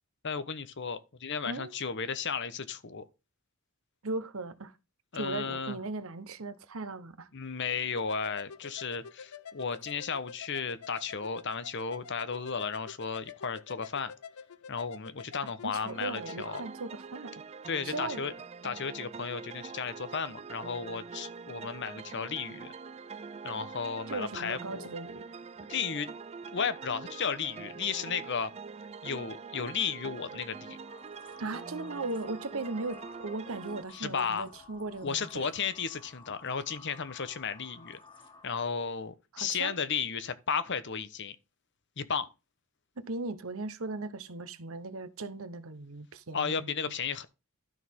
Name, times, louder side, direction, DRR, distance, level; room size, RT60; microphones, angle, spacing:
voice 1, 0.2-3.0 5.1-5.8 7.3-14.1 14.7-16.6 17.7-18.3 18.6-22.7 23.4-24.9 25.7-26.1 26.5-28.5 29.0-30.8 33.9-34.5 35.0-38.0 38.4-41.4 42.0-42.3 46.3-47.3, left 6 dB, 55° left, 1.0 m, -34 dB
voice 2, 4.0-4.7 5.1-7.3 15.6-17.3 17.8-18.2 24.1-25.3 31.4-35.4 39.3-39.8 43.0-46.7, right 3 dB, 70° right, 1.0 m, -38 dB
sound 1, 8.0-16.7, left 6 dB, 85° left, 0.7 m, -48 dB
sound 2, 15.9-33.8, right 5 dB, 30° right, 0.4 m, -44 dB
sound 3, 30.7-38.8, left 5 dB, 25° left, 2.0 m, -54 dB
12.5 x 6.4 x 3.7 m
head